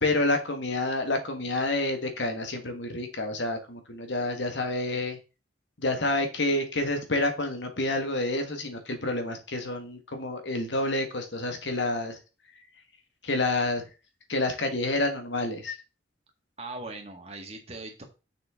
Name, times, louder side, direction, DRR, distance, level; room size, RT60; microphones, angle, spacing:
voice 1, 0.0-5.2 5.8-12.2 13.2-13.8 14.3-15.8, left 2 dB, 75° left, 6 dB, 1.7 m, -28 dB
voice 2, 16.6-18.0, right 2 dB, 35° right, 3 dB, 1.9 m, -40 dB
6.5 x 6.4 x 3.7 m, 0.31 s
head